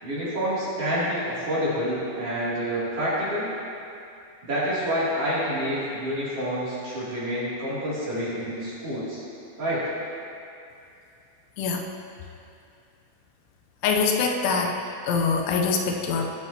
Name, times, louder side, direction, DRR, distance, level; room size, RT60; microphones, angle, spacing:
voice 1, 0.0-3.5 4.4-9.2 9.6-9.8, equal, 35° right, -11 dB, 3.3 m, -28 dB
voice 2, 13.8-14.7 15.0-16.3, left 5 dB, 85° left, 1 dB, 3.1 m, -24 dB
21.5 x 8.0 x 2.9 m, 2.6 s
omnidirectional pair, 5.5 m